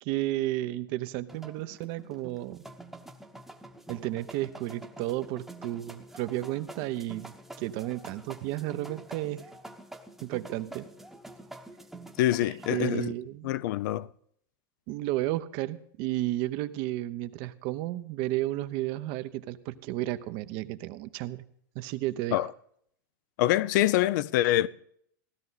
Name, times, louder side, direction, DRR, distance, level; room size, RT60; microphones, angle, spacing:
voice 1, 0.0-2.6 3.9-9.5 10.2-10.9 12.7-13.5 14.9-21.4 21.7-22.5, right 15 dB, 50° right, 0.9 m, -32 dB
sound 1, 1.3-13.0, right 1 dB, 5° right, 1.0 m, -47 dB
voice 2, 12.2-13.1 13.4-14.1 22.3-22.5 23.4-24.7, left 14 dB, 60° left, 0.6 m, -25 dB
16.5 x 12.5 x 4.0 m
supercardioid pair, 150°, 11 cm